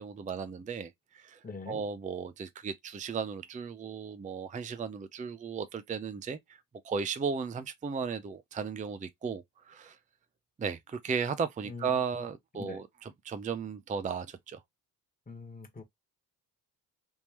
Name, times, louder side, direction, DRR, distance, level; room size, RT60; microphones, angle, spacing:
voice 1, 0.0-1.4 1.7-6.6 6.8-10.0 10.6-14.6, right 6 dB, 20° right, 0.5 m, -35 dB
voice 2, 1.4-1.8 11.6-12.3 12.6-12.8 15.3-15.8, left 4 dB, 20° left, 1.4 m, -43 dB
3.5 x 2.9 x 3.0 m
supercardioid pair, 75°, 44 cm